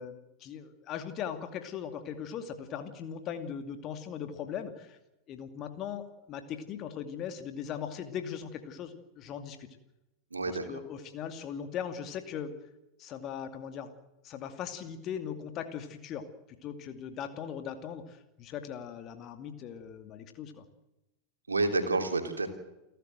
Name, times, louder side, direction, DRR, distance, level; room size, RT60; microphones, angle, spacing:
voice 1, 0.0-5.0 5.3-9.7 10.5-12.5 13.0-13.9 14.2-16.3 16.6-20.6, left 8 dB, 35° left, 8 dB, 2.5 m, -39 dB
voice 2, 10.3-10.8 21.5-22.5, right 3 dB, 75° right, 5 dB, 3.1 m, -29 dB
29.5 x 12.5 x 7.9 m, 0.95 s
figure-of-eight pair, 90°, 0 cm